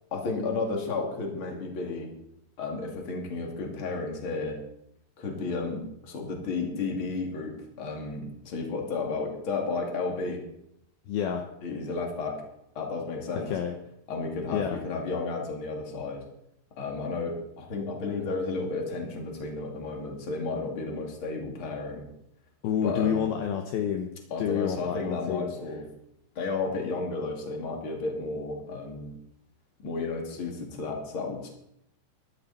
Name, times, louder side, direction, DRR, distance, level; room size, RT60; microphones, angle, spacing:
voice 1, 0.1-2.1 2.6-4.6 5.2-10.4 11.6-12.4 12.7-13.5 14.1-16.2 16.8-22.1 22.8-23.3 24.3-25.9 26.3-29.1 29.8-31.5, left 3 dB, 35° left, 1 dB, 2.5 m, -32 dB
voice 2, 11.1-11.4 13.5-13.7 14.5-14.8 22.6-24.1 24.4-25.5, left 8 dB, 80° left, 4 dB, 2.2 m, -28 dB
17.0 x 12.5 x 4.3 m, 0.78 s
omnidirectional pair, 5.7 m